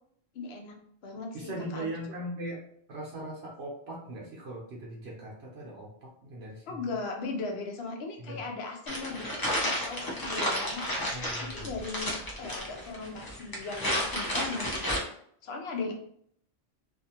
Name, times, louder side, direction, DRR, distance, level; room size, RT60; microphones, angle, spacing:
voice 1, 0.3-1.9 6.7-11.0 11.4-15.0 15.4-15.9, left 3 dB, 70° left, 3 dB, 0.8 m, -38 dB
voice 2, 1.3-2.6 2.9-6.8 8.2-8.4 11.1-11.8, right 1 dB, 70° right, -4 dB, 0.9 m, -39 dB
sound 1, 8.9-15.0, equal, 25° left, 0.5 m, -32 dB
2.4 x 2.4 x 2.7 m, 0.66 s
omnidirectional pair, 1.1 m